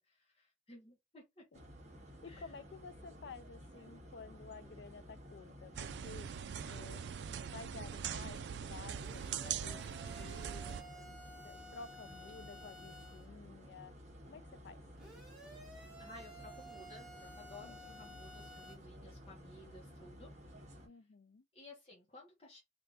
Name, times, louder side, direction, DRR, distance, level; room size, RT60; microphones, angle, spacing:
voice 1, 0.0-1.5 2.2-2.5 15.5-15.7 16.0-20.3 21.5-22.6, left 2 dB, 35° left, 1.0 m, -56 dB
sound 1, 1.5-20.9, equal, 40° right, 1.4 m, -54 dB
voice 2, 2.2-6.3 6.7-7.1 7.4-11.2 11.4-13.9 14.3-14.8 17.6-18.2 20.8-21.4, left 4 dB, 85° left, 0.4 m, -53 dB
sound 2, 5.7-10.8, right 8 dB, 85° right, 0.4 m, -42 dB
sound 3, 9.0-13.3 15.0-18.8, equal, 5° right, 1.6 m, -54 dB
3.4 x 2.5 x 3.9 m
head